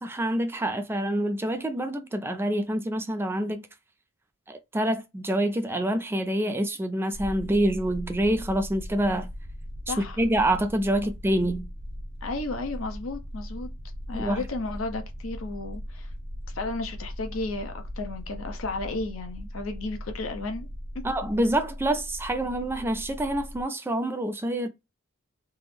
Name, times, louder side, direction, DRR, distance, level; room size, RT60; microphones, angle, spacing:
voice 1, 0.0-3.7 4.5-9.3 9.9-11.7 14.1-14.4 21.0-24.7, right 1 dB, 10° right, 0.3 m, -26 dB
sound 1, 7.1-23.6, equal, 50° right, 1.5 m, -39 dB
voice 2, 9.9-10.2 12.2-13.7 14.1-16.1 16.5-20.7, left 3 dB, 80° left, 0.7 m, -33 dB
3.4 x 2.0 x 3.2 m
head